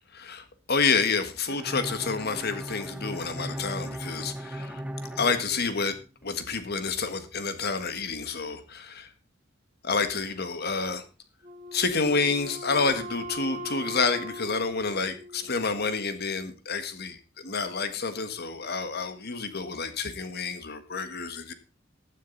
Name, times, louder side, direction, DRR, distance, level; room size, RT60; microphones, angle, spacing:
voice 1, 0.2-4.8 5.1-5.9 6.2-9.1 9.8-11.0 11.7-21.5, left 4 dB, 55° left, 1.6 m, -29 dB
Bowed string instrument, 1.5-6.3, right 1 dB, 5° right, 0.8 m, -38 dB
Wind instrument woodwind instrument, 11.4-15.9, equal, 40° right, 3.4 m, -40 dB
15.0 x 9.4 x 4.0 m
head